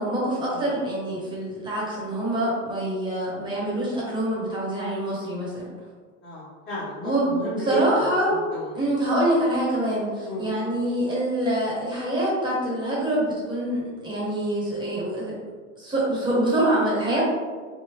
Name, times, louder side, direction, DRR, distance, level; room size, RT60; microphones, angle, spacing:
voice 1, 0.0-5.7 7.0-7.3 7.6-8.4 8.7-15.3 15.8-17.2, right 1 dB, 10° right, -6 dB, 1.0 m, -25 dB
voice 2, 6.2-7.8 8.3-8.9 10.2-10.5, equal, 25° left, -11 dB, 1.0 m, -34 dB
3.6 x 2.0 x 2.9 m, 1.5 s
supercardioid pair, 135°, 38 cm